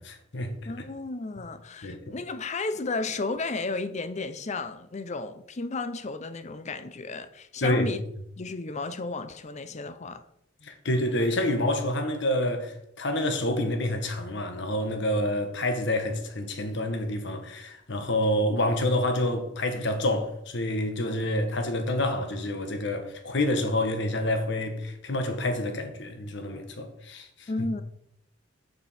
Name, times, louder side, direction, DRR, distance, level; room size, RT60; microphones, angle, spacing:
voice 1, 0.0-0.7 1.8-2.1 7.6-7.9 10.6-27.7, left 1 dB, 60° left, 1.2 m, -28 dB
voice 2, 0.7-8.0 8.4-10.2 27.5-27.8, left 3 dB, 35° left, 0.6 m, -33 dB
6.9 x 6.6 x 4.3 m
head